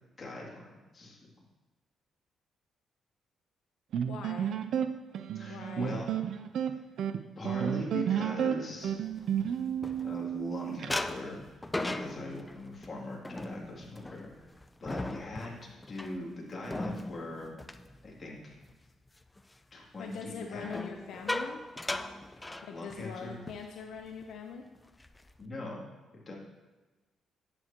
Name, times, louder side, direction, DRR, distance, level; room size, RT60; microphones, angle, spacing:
voice 1, 0.2-1.3 5.3-6.2 7.4-9.0 10.0-14.3 14.8-17.5 18.0-18.6 19.7-20.8 22.7-23.4 25.4-25.8 26.3-26.4, left 2 dB, 35° left, -3 dB, 2.7 m, -41 dB
sound 1, 3.9-10.9, right 9 dB, 70° right, 0.5 m, -32 dB
voice 2, 4.0-4.6 5.5-6.0 20.0-21.6 22.6-24.7, left 6 dB, 75° left, 3 dB, 0.8 m, -42 dB
sound 2, 9.0-10.5 10.9-18.7 19.1-19.4 20.6-23.2 23.5-23.7 24.0-24.3 24.8-25.4, left 2 dB, 15° left, 0.5 m, -39 dB
11.0 x 9.0 x 3.0 m, 1.2 s
cardioid pair, 90°, 0 cm